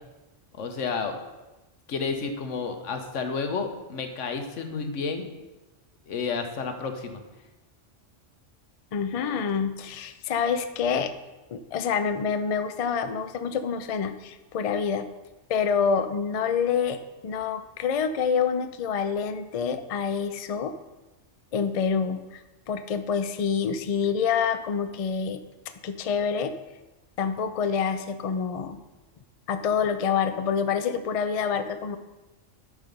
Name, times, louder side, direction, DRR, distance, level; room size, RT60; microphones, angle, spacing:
voice 1, 0.5-1.1 1.9-5.3 6.1-7.2, left 5 dB, 80° left, 6 dB, 1.2 m, -31 dB
voice 2, 8.9-11.1 11.5-15.1 15.5-20.7 21.5-22.4 22.7-25.4 25.8-26.5 27.2-28.8 29.5-32.0, left 6 dB, 60° left, 9 dB, 0.3 m, -27 dB
9.4 x 4.8 x 5.3 m, 1.1 s
omnidirectional pair, 1.3 m